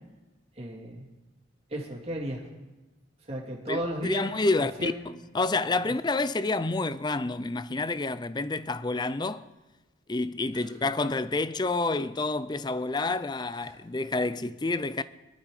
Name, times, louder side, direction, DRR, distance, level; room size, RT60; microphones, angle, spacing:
voice 1, 0.6-1.1 1.7-2.5 3.3-4.2 4.6-4.9 10.5-10.8 13.6-13.7, right 1 dB, 30° right, 2.7 m, -35 dB
voice 2, 3.7-4.9 5.3-9.5 10.1-15.0, left 3 dB, 20° left, 0.5 m, -28 dB
22.5 x 12.0 x 5.0 m
head